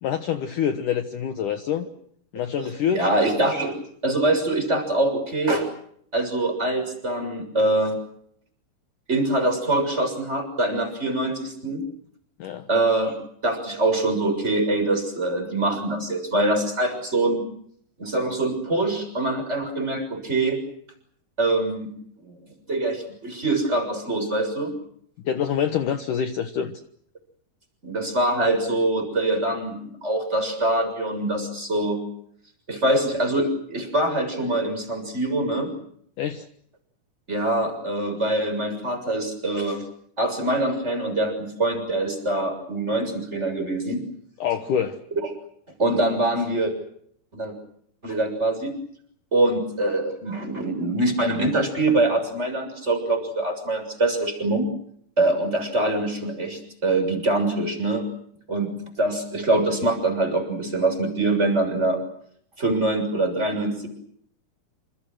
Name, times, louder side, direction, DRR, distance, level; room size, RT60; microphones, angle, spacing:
voice 1, 0.0-1.9 2.3-3.0 12.4-12.7 25.3-26.8 36.2-36.5 44.4-45.0, left 8 dB, 65° left, 7 dB, 2.5 m, -26 dB
voice 2, 2.9-3.8 4.0-5.7 6.1-8.0 9.1-11.8 12.7-13.1 13.4-17.4 18.0-20.6 21.4-21.9 22.2-22.3 22.7-24.7 27.8-32.0 32.7-35.7 37.3-39.8 40.2-44.0 45.8-46.7 47.3-47.5 48.0-48.7 49.3-54.7 55.2-58.0 58.5-58.7 59.0-62.0 62.6-63.9, right 2 dB, 15° right, 7 dB, 6.8 m, -24 dB
28.5 x 27.5 x 6.3 m, 0.67 s
omnidirectional pair, 4.6 m